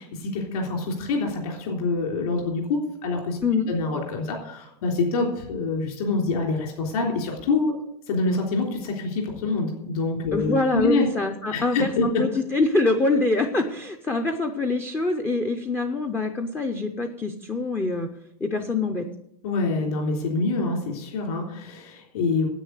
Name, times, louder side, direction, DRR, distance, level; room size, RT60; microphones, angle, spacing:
voice 1, 0.0-3.4 3.7-7.7 8.1-11.0 11.5-12.0 19.4-22.5, left 3 dB, 65° left, 1 dB, 3.6 m, -26 dB
voice 2, 10.3-18.1 18.4-19.1, left 3 dB, 5° left, 5 dB, 0.4 m, -25 dB
9.9 x 8.5 x 8.2 m, 0.77 s
supercardioid pair, 175°, 20 cm